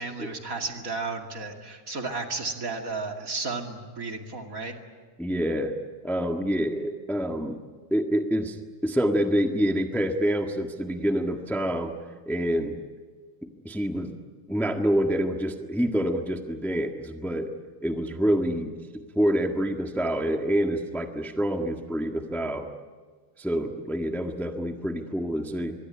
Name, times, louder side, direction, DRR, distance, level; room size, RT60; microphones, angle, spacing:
voice 1, 0.0-4.7, right 3 dB, 30° right, 3 dB, 2.6 m, -33 dB
voice 2, 5.2-5.7 6.0-7.6 7.9-8.6 8.8-11.9 12.3-12.8 13.6-14.2 14.5-17.5 17.8-18.8 19.1-22.7 23.4-25.7, equal, ahead, 4 dB, 0.3 m, -27 dB
25.0 x 22.5 x 9.9 m, 1.5 s
omnidirectional pair, 3.3 m